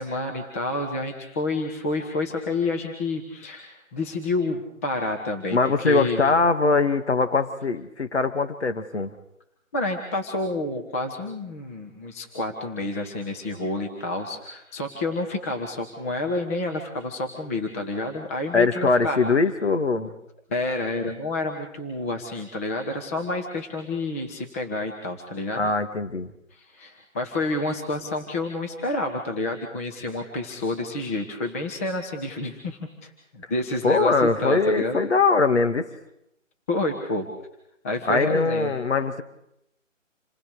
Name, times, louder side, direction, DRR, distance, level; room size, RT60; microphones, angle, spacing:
voice 1, 0.0-6.2 9.7-19.3 20.0-20.1 20.5-25.7 26.5-34.1 34.4-35.0 36.7-37.3 37.8-38.7, left 2 dB, 10° left, 1 dB, 1.3 m, -29 dB
voice 2, 5.5-9.1 18.5-20.1 25.6-26.3 33.8-35.8 38.1-39.2, left 3 dB, 55° left, 9 dB, 2.2 m, -22 dB
28.5 x 20.0 x 6.7 m, 0.80 s
figure-of-eight pair, 155°, 40 cm